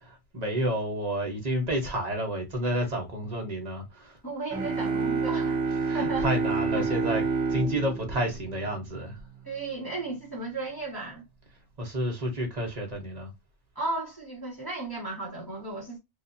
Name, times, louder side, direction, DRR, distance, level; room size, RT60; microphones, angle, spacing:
voice 1, 0.0-4.2 5.8-7.2 7.5-9.2 11.8-13.3, right 1 dB, 35° right, 1.1 m, -30 dB
voice 2, 4.2-5.6 5.9-6.3 6.7-6.9 9.4-11.2 13.7-16.0, right 3 dB, 20° left, 1.4 m, -34 dB
sound 1, 4.5-9.2, right 4 dB, 60° right, 1.0 m, -29 dB
3.4 x 2.7 x 2.7 m
omnidirectional pair, 1.2 m